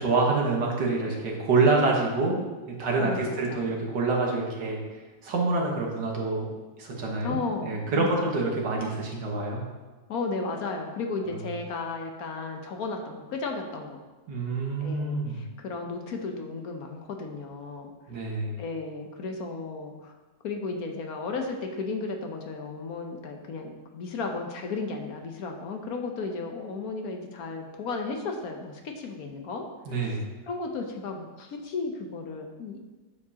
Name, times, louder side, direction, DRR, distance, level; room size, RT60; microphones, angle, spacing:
voice 1, 0.0-2.4 2.8-6.5 6.8-9.6 14.3-15.4 18.1-18.6 29.9-30.2, right 3 dB, 80° right, -1 dB, 2.0 m, -26 dB
voice 2, 3.0-3.7 7.2-8.3 10.1-14.0 14.8-17.9 18.3-20.1 20.4-30.1 30.5-32.8, left 4 dB, 65° left, 3 dB, 1.2 m, -34 dB
9.5 x 7.0 x 2.8 m, 1.2 s
omnidirectional pair, 1.8 m